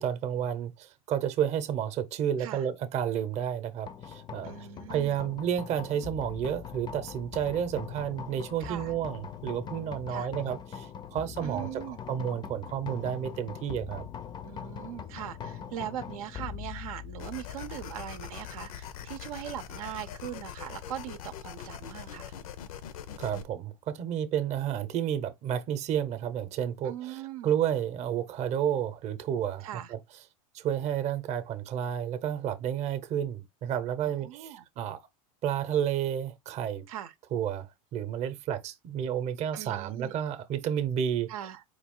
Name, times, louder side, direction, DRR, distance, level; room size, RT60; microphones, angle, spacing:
voice 1, 0.0-14.1 23.2-30.0 30.5-35.0 35.4-36.8 37.3-41.3, right 9 dB, 40° right, 0.7 m, -31 dB
sound 1, 3.9-21.1, left 8 dB, 25° left, 0.5 m, -43 dB
voice 2, 4.4-5.2 8.6-8.9 10.1-10.3 11.4-12.0 14.4-22.3 26.8-27.5 29.6-29.9 34.0-34.6 36.9-37.1 39.5-40.1 41.3-41.6, right 11 dB, 80° right, 0.6 m, -40 dB
sound 2, 17.2-23.4, left 9 dB, 75° left, 0.6 m, -43 dB
4.6 x 2.4 x 3.6 m
supercardioid pair, 110°, 18 cm